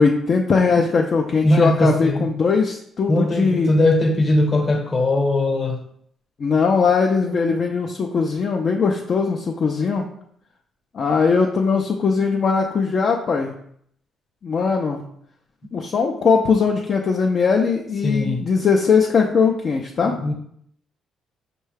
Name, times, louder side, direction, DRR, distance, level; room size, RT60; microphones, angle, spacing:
voice 1, 0.0-3.7 6.4-10.1 10.9-13.5 14.4-15.0 15.7-20.2, left 5 dB, 50° left, 1 dB, 0.4 m, -20 dB
voice 2, 1.4-2.3 3.1-5.8 18.0-18.4 20.0-20.3, left 1 dB, 35° left, 3 dB, 0.9 m, -19 dB
5.4 x 2.2 x 3.3 m, 0.68 s
cardioid pair, 90°, 0 cm